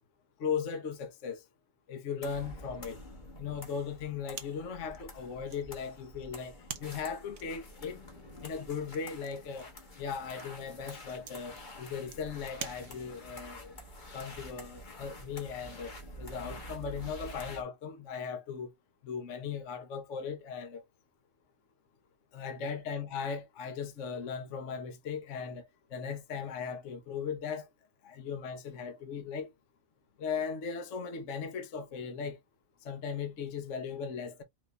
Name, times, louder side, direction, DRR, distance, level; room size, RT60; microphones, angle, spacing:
voice 1, 0.4-1.4 1.9-3.0 3.4-6.5 6.8-8.0 8.4-9.7 10.0-13.7 14.1-18.7 19.0-20.8 22.3-27.7 28.0-29.5 30.2-32.4 32.8-34.4, left 6 dB, 55° left, 1.1 m, -38 dB
sound 1, 2.2-17.6, left 1 dB, 30° left, 1.3 m, -48 dB
sound 2, 4.3-13.4, right 7 dB, 55° right, 1.0 m, -49 dB
5.0 x 2.6 x 3.3 m
omnidirectional pair, 1.8 m